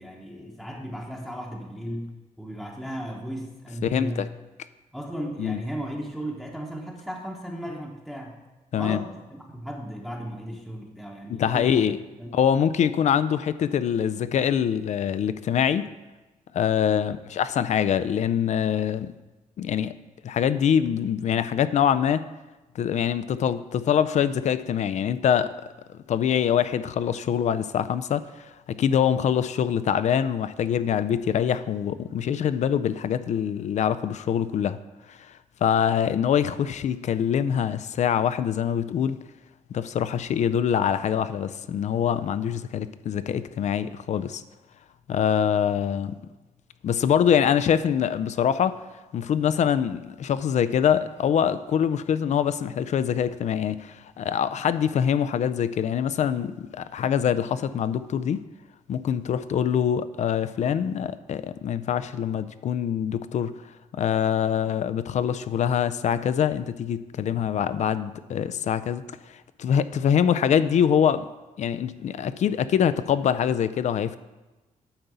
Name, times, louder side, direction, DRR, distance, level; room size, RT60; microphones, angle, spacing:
voice 1, 0.0-2.1 2.4-4.3 4.9-8.3 8.7-11.9 12.2-12.4 16.9-17.1, equal, ahead, -2 dB, 1.0 m, -35 dB
voice 2, 3.8-4.3 5.4-5.6 8.7-9.0 11.3-12.0 12.3-15.9 16.5-19.1 19.6-19.9 20.2-22.2 22.8-25.5 25.9-34.8 35.1-39.2 39.7-44.4 45.1-46.2 46.8-48.8 49.1-58.4 58.9-63.5 63.9-69.0 69.3-71.3 71.6-74.2, left 8 dB, 55° left, 13 dB, 0.4 m, -24 dB
9.9 x 3.9 x 6.8 m, 1.1 s
cardioid pair, 115°, 14 cm